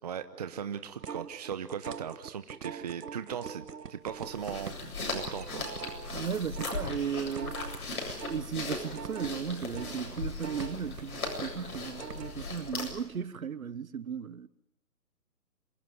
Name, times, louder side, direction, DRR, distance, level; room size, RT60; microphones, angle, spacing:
voice 1, 0.0-4.8 5.1-5.6, right 8 dB, 25° right, 0.8 m, -38 dB
sound 1, 1.0-8.4 8.7-12.4 12.8-12.9, right 7 dB, 75° right, 1.2 m, -43 dB
sound 2, 4.1-13.1, left 3 dB, 60° left, 7.9 m, -38 dB
voice 2, 6.1-7.6 8.3-14.5, right 7 dB, 55° right, 1.2 m, -36 dB
27.0 x 16.5 x 9.5 m
figure-of-eight pair, 150°, 48 cm